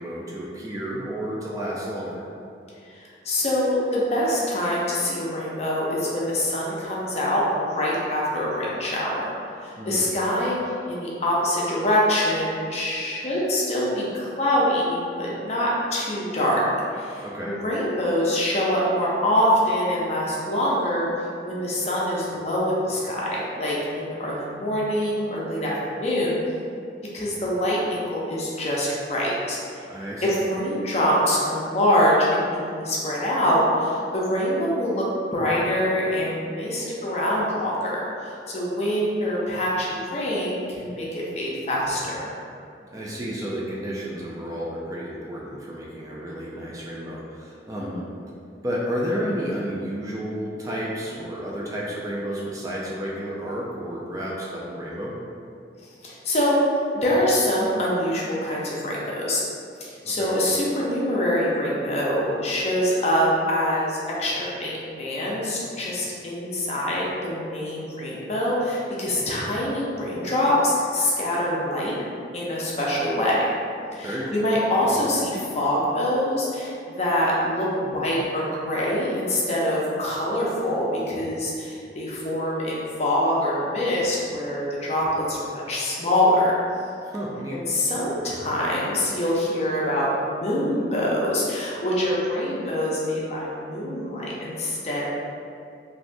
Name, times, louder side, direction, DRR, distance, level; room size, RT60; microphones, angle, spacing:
voice 1, 0.0-2.3 9.8-10.1 17.2-17.5 29.9-30.4 42.9-48.1 48.6-55.1 60.0-60.3 74.0-74.4 87.0-87.6, equal, 20° right, -5 dB, 0.3 m, -31 dB
voice 2, 2.9-9.3 9.6-10.6 10.9-16.6 16.9-26.4 27.1-29.8 30.2-35.0 35.3-42.3 47.8-48.0 56.0-56.6 56.9-59.4 59.8-72.0 72.3-73.5 73.9-86.5 87.5-95.1, left 1 dB, 40° left, -5 dB, 0.6 m, -24 dB
3.2 x 2.6 x 2.5 m, 2.5 s
head